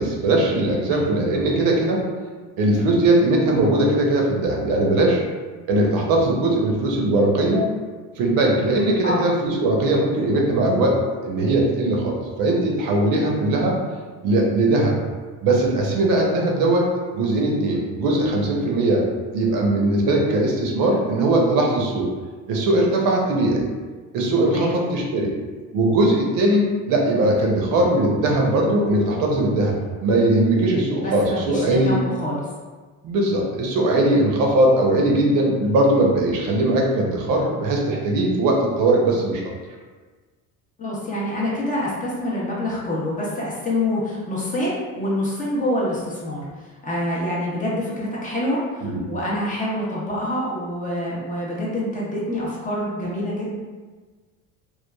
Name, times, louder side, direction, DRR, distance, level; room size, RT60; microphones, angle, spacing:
voice 1, 0.0-2.0 2.6-5.2 5.7-7.7 8.2-13.8 14.2-15.0 15.4-19.0 19.3-22.1 22.5-23.7 24.1-25.3 25.7-32.0 33.0-39.5 48.8-49.0, right 1 dB, 65° right, -1 dB, 0.7 m, -20 dB
voice 2, 31.0-32.4 40.8-53.6, left 1 dB, 20° left, -5 dB, 0.5 m, -26 dB
3.0 x 2.2 x 2.2 m, 1.4 s
cardioid pair, 145°, 36 cm